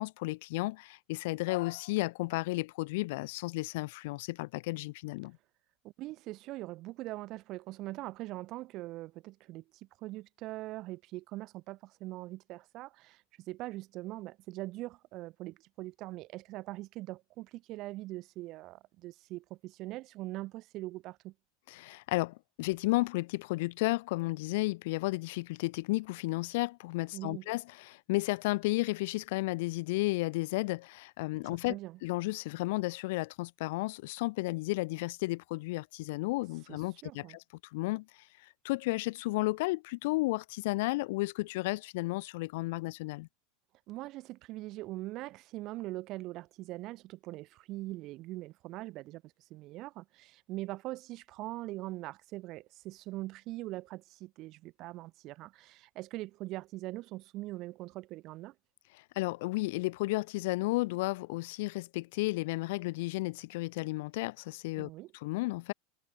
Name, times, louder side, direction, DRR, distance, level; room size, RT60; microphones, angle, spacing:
voice 1, 0.0-5.4 21.7-31.7 32.0-37.4 37.7-38.0 38.6-43.3 59.2-64.9 65.2-65.7, left 22 dB, 65° left, 7.4 m, -33 dB
voice 2, 5.8-21.3 27.1-27.5 31.4-32.0 36.7-37.4 43.9-58.5 64.8-65.1, right 18 dB, 40° right, 5.3 m, -42 dB
supercardioid pair, 155°, 0 cm